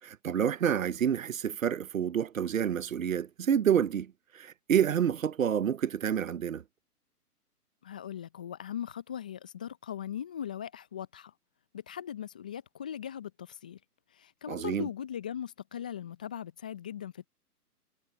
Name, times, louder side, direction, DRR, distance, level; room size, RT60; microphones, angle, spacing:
voice 1, 0.0-6.6 14.5-14.9, right 8 dB, 55° right, 1.0 m, -28 dB
voice 2, 7.8-11.3 11.7-13.8 14.1-17.3, left 9 dB, 5° left, 0.5 m, -39 dB
figure-of-eight pair, 125°, 47 cm